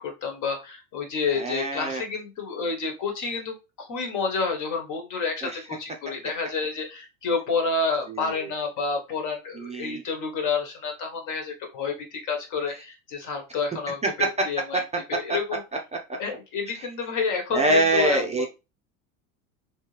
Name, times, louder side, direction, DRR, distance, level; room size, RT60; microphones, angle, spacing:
voice 1, 0.0-14.8 15.1-15.6 16.2-18.5, left 4 dB, 50° left, 3 dB, 1.4 m, -29 dB
voice 2, 1.3-2.0 5.4-5.6 8.1-8.5 9.5-10.0 14.0-14.3 15.3-15.4 16.7-16.9 17.5-18.5, right 2 dB, 15° right, 1 dB, 0.6 m, -25 dB
3.1 x 2.9 x 3.2 m, 0.27 s
hypercardioid pair, 95°, 40 cm